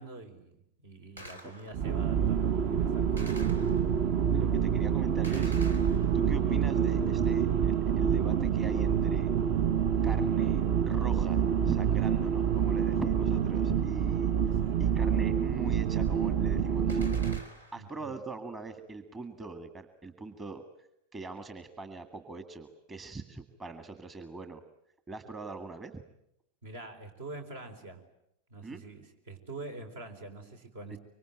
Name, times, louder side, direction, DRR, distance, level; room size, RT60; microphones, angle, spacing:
voice 1, 0.0-3.6 14.5-14.9 17.8-18.2 26.6-28.0 28.5-31.0, right 2 dB, 60° right, 6 dB, 4.4 m, -45 dB
Gunshot gunfire, 1.2-2.0 3.2-4.1 5.2-6.5 16.9-18.0, equal, 80° right, 3.1 m, -47 dB
sound 1, 1.7-17.4, right 8 dB, 40° right, 1.1 m, -27 dB
voice 2, 4.3-5.7 6.1-9.3 10.0-14.3 14.8-17.2 17.7-20.6 21.1-24.6 25.1-26.0 28.6-28.8 30.9-31.0, right 3 dB, 20° right, 8 dB, 1.8 m, -41 dB
25.5 x 24.5 x 9.1 m, 0.80 s
figure-of-eight pair, 90°, 0 cm